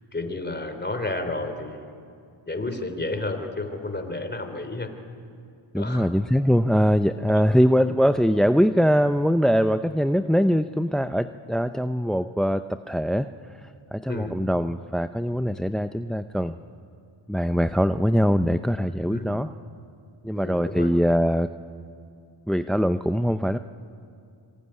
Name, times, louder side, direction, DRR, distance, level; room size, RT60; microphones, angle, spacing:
voice 1, 0.1-2.0 2.5-4.9 5.7-6.1 7.3-7.4 14.1-14.3 19.1-19.4 20.3-20.9, left 2 dB, 20° left, 7 dB, 3.3 m, -31 dB
voice 2, 5.7-16.5 17.3-19.5 20.2-21.5 22.5-23.6, equal, ahead, 10 dB, 0.5 m, -22 dB
25.0 x 20.5 x 9.9 m, 2.4 s
cardioid pair, 65°, 49 cm